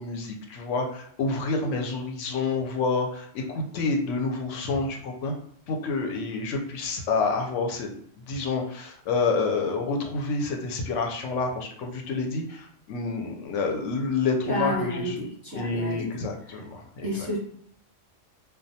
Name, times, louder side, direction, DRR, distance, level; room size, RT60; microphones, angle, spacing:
voice 1, 0.0-5.3 5.7-7.9 8.2-15.2 15.5-17.4, left 4 dB, 80° left, 2 dB, 0.9 m, -28 dB
voice 2, 14.5-16.2 17.0-17.4, equal, 25° right, -7 dB, 0.5 m, -30 dB
2.2 x 2.2 x 2.7 m, 0.64 s
omnidirectional pair, 1.2 m